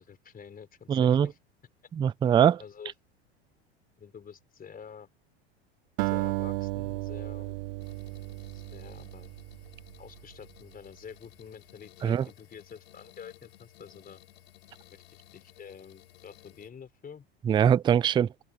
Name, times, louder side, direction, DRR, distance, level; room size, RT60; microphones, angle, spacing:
voice 1, 0.0-1.4 2.6-2.9 4.0-5.1 6.0-7.6 8.5-9.3 10.0-14.2 14.9-15.0 15.3-17.3, left 7 dB, 25° left, 4.1 m, -48 dB
voice 2, 0.9-1.3 2.0-2.6 12.0-12.2 17.5-18.3, right 9 dB, 15° right, 0.3 m, -22 dB
Acoustic guitar, 6.0-10.4, right 23 dB, 65° right, 1.5 m, -34 dB
sound 1, 7.8-16.7, left 16 dB, 75° left, 6.0 m, -56 dB
hypercardioid pair, 85°, 32 cm